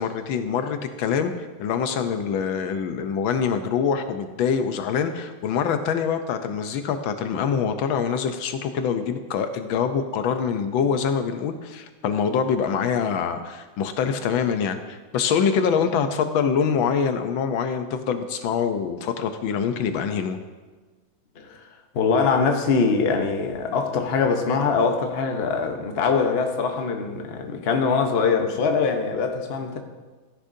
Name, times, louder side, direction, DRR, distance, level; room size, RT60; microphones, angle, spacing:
voice 1, 0.0-20.4, left 6 dB, 80° left, 1.5 m, -25 dB
voice 2, 21.9-29.8, left 5 dB, 45° left, 0.9 m, -23 dB
15.0 x 10.0 x 2.7 m
omnidirectional pair, 2.1 m